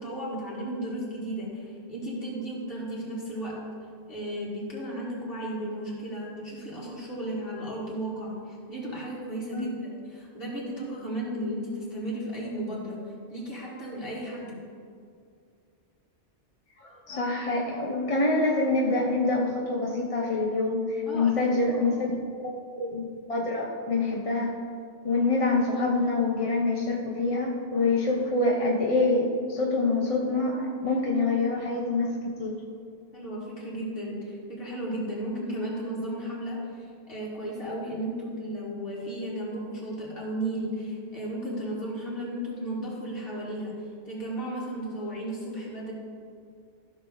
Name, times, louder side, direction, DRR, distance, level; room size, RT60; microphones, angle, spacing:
voice 1, 0.0-3.6 4.1-13.0 13.3-14.6 21.1-21.9 33.1-43.8 44.0-45.9, right 1 dB, 50° left, -6 dB, 2.7 m, -34 dB
voice 2, 16.8-22.1 22.4-22.5 22.8-23.0 23.3-24.6 25.0-32.6, left 3 dB, 30° left, -2 dB, 1.0 m, -26 dB
15.0 x 6.3 x 4.0 m, 2.3 s
omnidirectional pair, 1.2 m